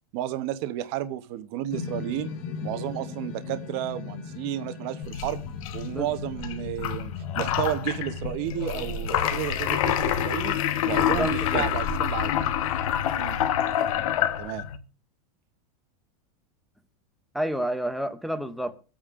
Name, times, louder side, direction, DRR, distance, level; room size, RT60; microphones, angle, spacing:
voice 1, 0.1-2.3 2.6-5.4 5.7-10.5 10.9-12.3 13.1-13.4 14.4-14.6, right 13 dB, 40° right, 0.9 m, -32 dB
sound 1, 1.7-10.1, left 6 dB, 45° left, 1.7 m, -39 dB
sound 2, 5.0-14.8, left 10 dB, 60° left, 1.1 m, -27 dB
voice 2, 10.9-11.6 17.3-18.7, equal, ahead, 0.6 m, -30 dB
25.0 x 8.8 x 2.5 m
supercardioid pair, 165°, 20 cm